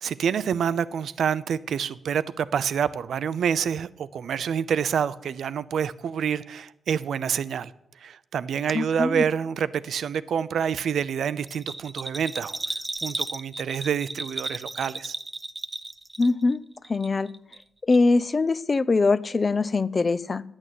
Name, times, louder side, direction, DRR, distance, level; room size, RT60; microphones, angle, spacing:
voice 1, 0.0-7.7 8.0-12.6 13.0-15.1, right 7 dB, 80° right, 0.6 m, -27 dB
voice 2, 8.7-9.2 16.2-16.6 16.9-17.3 17.8-20.4, left 3 dB, 35° left, 0.5 m, -22 dB
Bell, 11.5-16.6 16.8-17.6 17.9-18.0, right 2 dB, 15° right, 0.7 m, -34 dB
10.5 x 8.9 x 8.3 m
cardioid pair, 105°, 0 cm